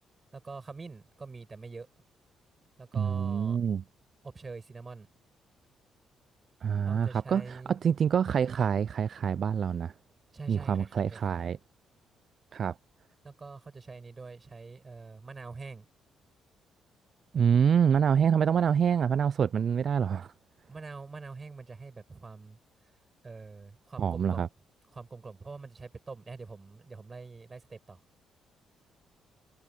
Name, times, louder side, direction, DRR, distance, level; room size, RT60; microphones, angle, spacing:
voice 1, 0.3-1.9 2.8-3.6 4.2-5.1 6.9-7.8 10.3-11.5 13.2-15.9 20.7-22.6 23.2-24.5 24.9-28.0, right 4 dB, 30° right, 6.9 m, -45 dB
voice 2, 2.9-3.8 6.6-9.9 10.5-11.6 12.5-12.7 17.3-20.3 24.0-24.5, right 7 dB, 55° right, 0.3 m, -26 dB
cardioid pair, 90°, 0 cm